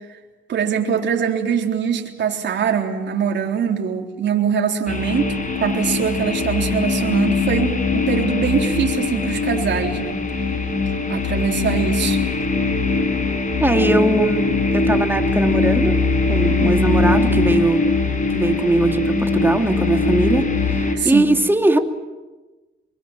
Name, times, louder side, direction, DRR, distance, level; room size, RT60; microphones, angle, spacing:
voice 1, 0.5-10.2 11.1-12.2 20.9-21.3, right 7 dB, 65° right, 1 dB, 3.8 m, -22 dB
sound 1, 4.9-21.0, left 3 dB, 40° left, 5.6 m, -21 dB
voice 2, 13.6-16.0 16.3-17.9 18.3-21.8, right 2 dB, 10° right, 5 dB, 2.8 m, -20 dB
25.5 x 24.0 x 9.1 m, 1.2 s
cardioid pair, 90°, 20 cm